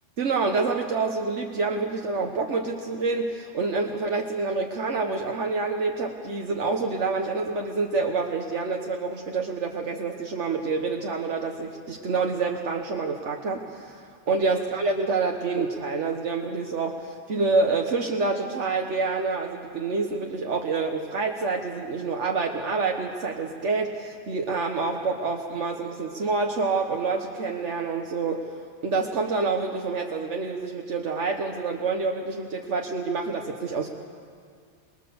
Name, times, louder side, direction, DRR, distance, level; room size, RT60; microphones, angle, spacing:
voice 1, 0.2-28.5 28.8-33.9, right 4 dB, 80° right, 2 dB, 1.6 m, -27 dB
23.5 x 21.5 x 7.0 m, 2.2 s
omnidirectional pair, 1.2 m